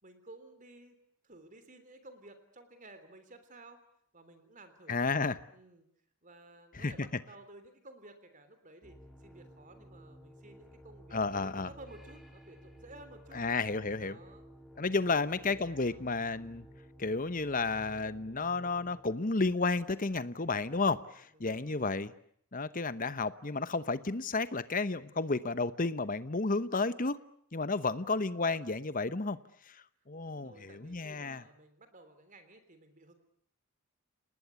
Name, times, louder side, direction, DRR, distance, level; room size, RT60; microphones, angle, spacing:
voice 1, 0.0-1.0 1.2-3.8 4.1-5.1 5.5-5.9 6.2-13.4 14.0-14.4 14.8-16.1 21.3-21.8 27.7-28.1 30.3-33.1, right 2 dB, 35° right, 9 dB, 3.4 m, -55 dB
voice 2, 4.9-5.4 6.7-6.9 11.1-11.7 13.3-14.2 14.8-16.7 17.0-22.1 22.5-27.2 27.5-29.4 29.7-29.8 30.1-31.4, left 3 dB, 40° left, 14 dB, 1.0 m, -32 dB
sound 1, 8.8-19.0, equal, ahead, 3.5 m, -54 dB
29.5 x 19.5 x 8.4 m, 0.68 s
head